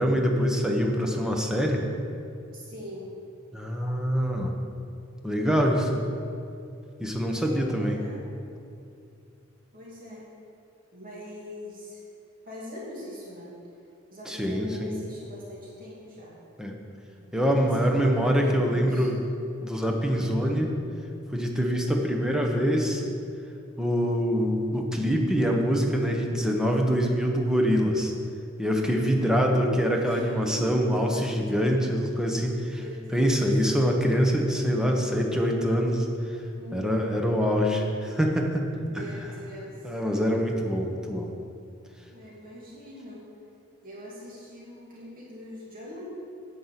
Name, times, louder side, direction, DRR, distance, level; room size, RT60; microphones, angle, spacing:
voice 1, 0.0-1.8 3.5-4.5 5.2-6.0 7.0-8.0 14.3-15.0 16.6-16.8 17.3-19.2 19.6-20.7 21.3-23.0 23.8-28.1 28.6-32.8 33.1-36.1 36.7-38.7 38.9-39.0 39.8-41.3, equal, 5° right, 1 dB, 1.1 m, -25 dB
voice 2, 2.5-3.1 7.2-8.3 9.7-10.3 10.9-12.0 12.4-13.6 14.1-16.3 17.2-17.3 17.6-19.1 29.1-29.8 30.0-30.8 32.7-33.5 36.6-37.1 38.9-39.9 42.1-43.3 43.8-46.0, left 1 dB, 45° right, -6 dB, 2.7 m, -42 dB
10.0 x 5.5 x 8.2 m, 2.5 s
head